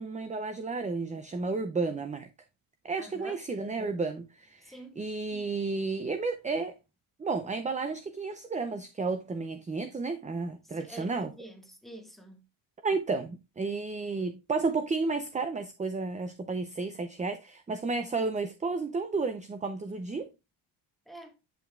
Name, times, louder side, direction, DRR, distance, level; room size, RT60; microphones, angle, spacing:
voice 1, 0.0-2.3 2.8-6.7 7.2-11.3 12.8-20.3, right 4 dB, 15° right, 0.4 m, -32 dB
voice 2, 3.0-3.4 4.6-5.0 10.6-12.4 21.1-21.3, right 1 dB, ahead, 1.4 m, -47 dB
8.8 x 5.4 x 2.3 m
cardioid pair, 135°, 50 cm